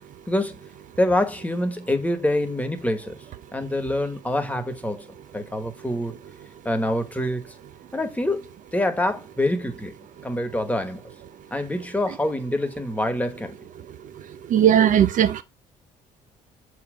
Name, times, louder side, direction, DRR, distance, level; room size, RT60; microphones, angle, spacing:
voice 1, 0.3-0.6 1.0-3.1 3.5-5.1 5.3-6.1 6.6-7.5 7.9-8.5 8.7-9.9 10.2-11.0 11.5-13.6, left 1 dB, 10° left, 1.4 m, -25 dB
voice 2, 14.5-15.4, right 10 dB, 55° right, 0.5 m, -17 dB
6.9 x 3.2 x 5.0 m
cardioid pair, 85°, 16 cm